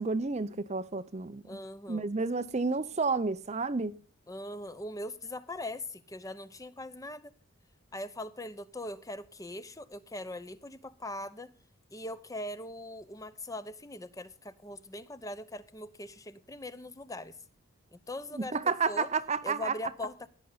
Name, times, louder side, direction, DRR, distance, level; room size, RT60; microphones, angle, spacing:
voice 1, 0.0-1.4 1.9-3.9 18.5-19.7, right 4 dB, 30° right, 0.6 m, -30 dB
voice 2, 1.4-2.1 4.3-7.3 7.9-11.5 11.9-17.3 17.9-19.1 19.4-20.3, left 1 dB, 15° left, 0.8 m, -41 dB
16.5 x 9.9 x 4.0 m
head